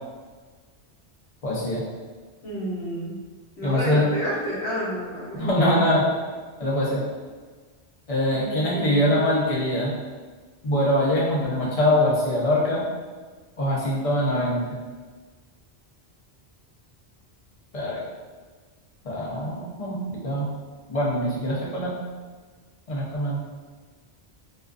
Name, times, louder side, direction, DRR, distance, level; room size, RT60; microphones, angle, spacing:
voice 1, 1.4-1.8 3.6-4.1 5.4-6.0 6.6-7.0 8.1-10.0 10.6-12.8 13.6-14.6 17.7-18.0 19.0-20.5 20.9-21.9 22.9-23.4, left 1 dB, 40° left, -5 dB, 0.6 m, -23 dB
voice 2, 2.4-3.2 3.6-6.0 8.3-9.2, equal, 80° left, -6 dB, 1.0 m, -30 dB
2.4 x 2.3 x 2.3 m, 1.4 s
omnidirectional pair, 1.1 m